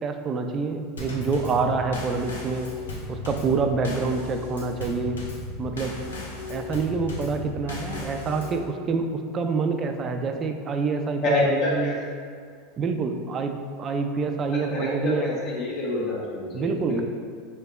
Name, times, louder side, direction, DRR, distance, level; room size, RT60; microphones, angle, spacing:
voice 1, 0.0-2.7 3.1-5.2 5.6-6.0 6.5-12.0 12.8-13.5 13.8-15.4 16.5-17.0, right 4 dB, 35° right, 5 dB, 0.3 m, -27 dB
Drum kit / Snare drum / Bass drum, 1.0-8.6, left 2 dB, 85° left, 0.7 m, -35 dB
voice 2, 11.2-11.9 14.5-17.0, left 2 dB, 50° left, -6 dB, 1.3 m, -27 dB
4.5 x 3.3 x 2.3 m, 2.1 s
hypercardioid pair, 90°, 0 cm